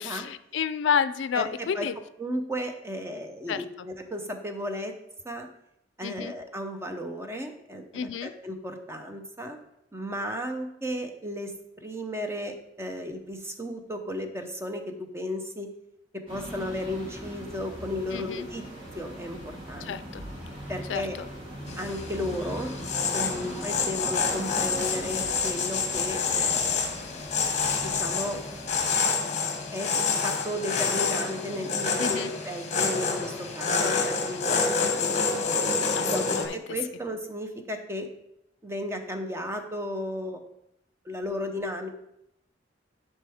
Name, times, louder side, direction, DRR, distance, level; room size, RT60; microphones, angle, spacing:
voice 1, 0.0-1.9 3.5-3.6 6.0-6.3 7.9-8.3 18.1-18.5 19.8-20.2 20.9-21.3 23.2-23.5 32.0-32.3 35.9-36.6, left 7 dB, 75° left, 13 dB, 0.4 m, -30 dB
voice 2, 1.3-1.9 2.2-4.9 5.2-5.5 6.0-9.6 9.9-15.7 16.1-18.6 18.9-19.4 19.7-20.2 20.7-21.2 21.8-22.7 23.1-27.0 27.8-28.4 29.7-35.2 36.0-38.1 38.6-40.4 41.0-41.9, left 1 dB, 15° right, 5 dB, 0.7 m, -34 dB
sound 1, 16.3-28.9, equal, 30° right, 2.4 m, -41 dB
sound 2, 21.7-36.5, left 5 dB, 40° left, 1.1 m, -28 dB
11.0 x 4.4 x 3.5 m, 0.81 s
head